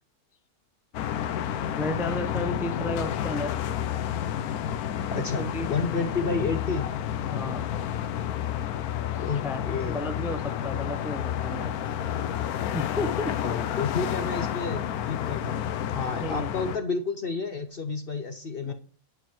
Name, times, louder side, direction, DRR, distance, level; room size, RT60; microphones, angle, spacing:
sound 1, 0.9-16.8, left 10 dB, 80° left, 1.1 m, -30 dB
voice 1, 1.8-3.5 5.1-5.7 7.3-7.6 8.6-8.7 9.1-11.8 12.7-13.4 16.2-16.5 18.6-18.7, left 1 dB, ahead, 7 dB, 0.5 m, -33 dB
voice 2, 5.1-6.9 9.2-10.0 13.4-15.7 15.9-18.7, left 4 dB, 50° left, 8 dB, 0.7 m, -30 dB
10.5 x 4.5 x 6.1 m, 0.43 s
omnidirectional pair, 1.6 m